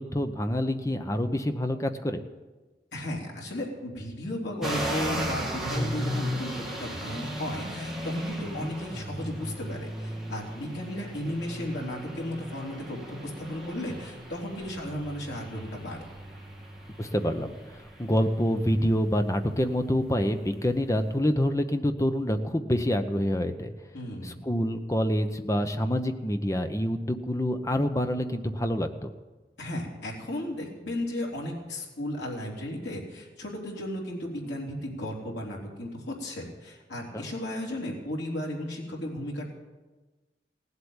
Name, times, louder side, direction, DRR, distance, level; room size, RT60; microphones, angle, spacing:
voice 1, 0.0-2.2 8.6-8.7 17.0-17.6 18.0-23.7 24.2-29.1 37.1-37.2, equal, 20° left, 7 dB, 0.8 m, -27 dB
voice 2, 2.9-16.0 23.9-24.4 29.6-39.5, left 1 dB, 85° left, -2 dB, 3.4 m, -35 dB
sound 1, 4.6-21.1, equal, ahead, 1.9 m, -36 dB
17.5 x 8.1 x 8.8 m, 1.2 s
head